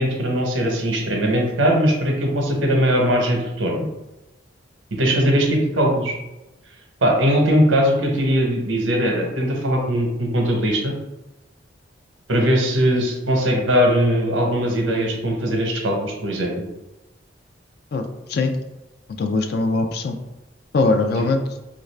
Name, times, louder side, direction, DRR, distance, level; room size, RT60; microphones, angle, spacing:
voice 1, 0.0-3.8 5.0-6.1 7.0-10.9 12.3-16.5 21.2-21.3, equal, 85° right, 1 dB, 0.8 m, -20 dB
voice 2, 19.2-20.2 20.7-21.4, left 3 dB, 55° left, 6 dB, 0.3 m, -21 dB
3.1 x 2.5 x 3.2 m, 0.99 s
head